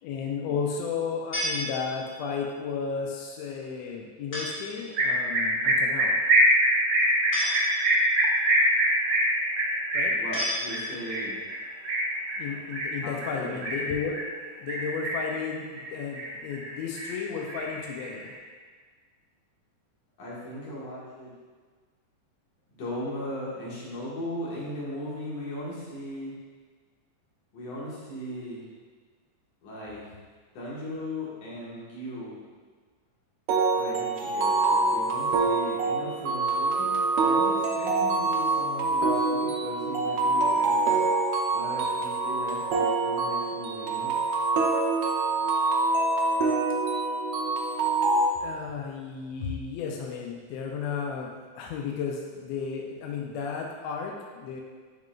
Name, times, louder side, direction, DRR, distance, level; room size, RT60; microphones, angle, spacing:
voice 1, 0.0-6.2 9.9-10.2 12.4-14.2 14.6-18.3 48.4-54.6, left 6 dB, 85° left, 0 dB, 1.5 m, -33 dB
sound 1, 1.3-2.3 4.3-4.8 7.3-8.2 10.3-11.2, equal, 40° left, 2.0 m, -33 dB
sound 2, 5.0-14.3 14.7-15.4 15.8-16.7 17.0-18.3, right 1 dB, 65° right, 2.2 m, -25 dB
voice 2, 10.2-11.4 13.0-13.6 20.2-21.3 22.7-26.3 27.5-28.7 29.6-30.0 30.5-32.4 33.8-36.9 37.2-41.0 41.5-44.2, left 1 dB, 60° left, -7 dB, 2.6 m, -38 dB
sound 3, 33.5-48.3, right 3 dB, 85° right, 1.3 m, -25 dB
10.5 x 3.8 x 2.5 m, 1.5 s
omnidirectional pair, 3.6 m